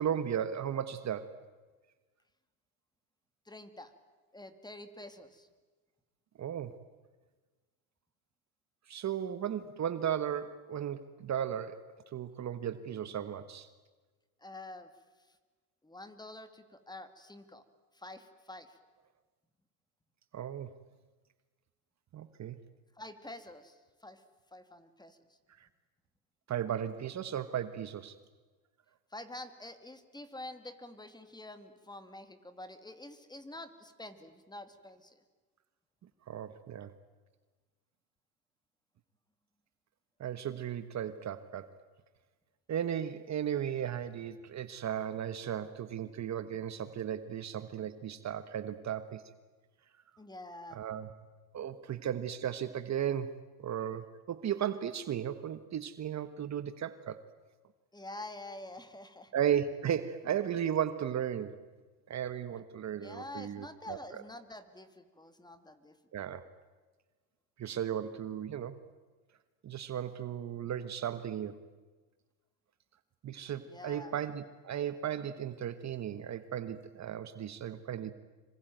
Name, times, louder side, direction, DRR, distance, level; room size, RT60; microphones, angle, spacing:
voice 1, 0.0-1.3 6.4-6.8 8.9-11.9 12.1-13.7 20.3-20.7 22.1-22.6 25.6-25.7 26.5-28.2 36.3-36.9 40.2-41.7 42.7-49.2 50.7-51.1 51.5-57.2 59.3-61.6 62.1-64.0 66.1-66.4 67.6-68.8 69.6-71.6 73.2-78.1, right 9 dB, 40° right, 12 dB, 1.4 m, -35 dB
voice 2, 3.5-3.9 4.3-5.5 14.4-14.9 15.8-17.6 17.9-18.8 23.0-24.2 24.5-25.2 29.1-35.2 50.2-50.8 57.9-59.3 63.0-66.0 73.6-74.1, left 1 dB, 10° left, 10 dB, 2.6 m, -47 dB
26.5 x 24.5 x 9.3 m, 1.3 s
supercardioid pair, 105°, 44 cm